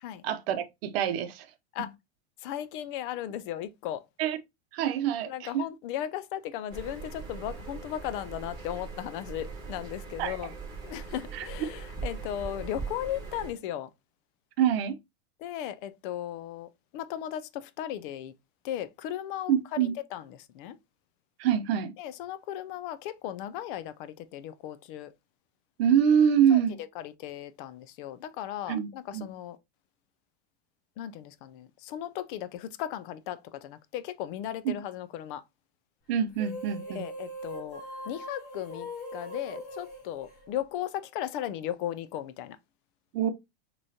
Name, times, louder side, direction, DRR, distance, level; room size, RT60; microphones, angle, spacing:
voice 1, 0.2-1.5 4.2-4.4 4.7-5.6 10.2-10.4 11.3-11.5 14.6-15.0 19.5-19.9 21.4-21.9 25.8-26.8 28.7-29.3 34.6-34.7 36.1-37.1 43.1-43.3, right 9 dB, 65° right, 0.8 m, -25 dB
voice 2, 2.4-4.0 5.3-10.5 10.8-13.9 15.4-16.7 16.9-18.3 18.6-19.5 20.1-20.2 20.5-20.8 22.0-25.1 26.5-26.6 27.2-29.6 31.0-35.4 37.0-42.6, left 11 dB, 50° left, 0.5 m, -36 dB
sound 1, 6.7-13.5, right 4 dB, 15° right, 2.2 m, -40 dB
sound 2, 36.3-41.0, equal, 30° left, 1.9 m, -41 dB
6.1 x 3.1 x 2.8 m
supercardioid pair, 155°, 33 cm